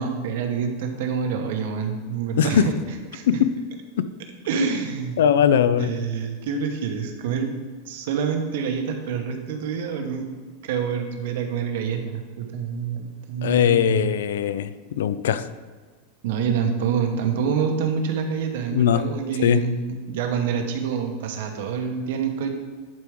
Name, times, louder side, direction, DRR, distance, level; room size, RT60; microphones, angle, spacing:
voice 1, 0.0-2.7 3.1-3.2 4.5-5.2 5.8-7.6 7.8-10.3 10.6-14.1 16.2-22.5, right 6 dB, 60° right, 5 dB, 1.0 m, -27 dB
voice 2, 5.2-5.9 13.4-15.5 18.7-19.0 19.4-19.6, left 9 dB, 90° left, 14 dB, 0.4 m, -20 dB
11.0 x 4.5 x 3.6 m, 1.5 s
supercardioid pair, 175°, 0 cm